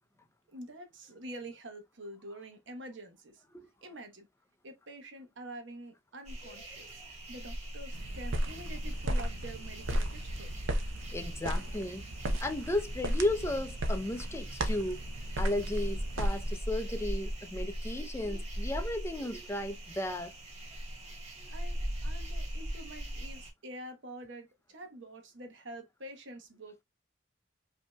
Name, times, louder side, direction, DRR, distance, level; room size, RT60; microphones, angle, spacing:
voice 1, 0.5-3.4 3.8-4.3 4.6-7.0 7.3-10.6 21.5-26.8, right 1 dB, 70° right, 1.0 m, -47 dB
sound 1, 6.2-23.5, equal, 35° right, 1.6 m, -40 dB
sound 2, 7.9-16.6, right 1 dB, 85° right, 0.7 m, -35 dB
voice 2, 11.1-12.0 12.4-15.0 15.4-20.3, left 1 dB, 15° left, 0.5 m, -34 dB
5.1 x 2.8 x 2.2 m
head